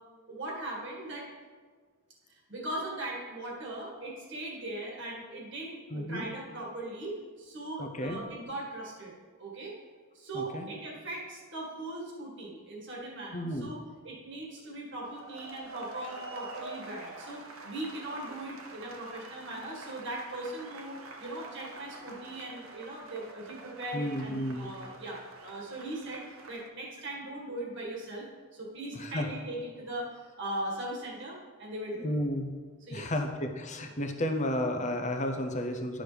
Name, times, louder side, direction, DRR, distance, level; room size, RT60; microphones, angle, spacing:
voice 1, 0.3-1.3 2.3-9.1 9.4-9.7 10.1-13.8 14.0-32.2 32.8-33.1, right 1 dB, 55° right, -3 dB, 1.9 m, -39 dB
voice 2, 5.9-6.2 7.8-8.2 10.3-10.7 13.3-13.7 23.9-24.7 28.9-29.3 32.0-32.5 32.9-36.0, left 1 dB, 30° left, 5 dB, 0.7 m, -32 dB
sound 1, 15.0-26.7, right 3 dB, 70° right, 0.8 m, -47 dB
11.5 x 6.3 x 3.4 m, 1.5 s
head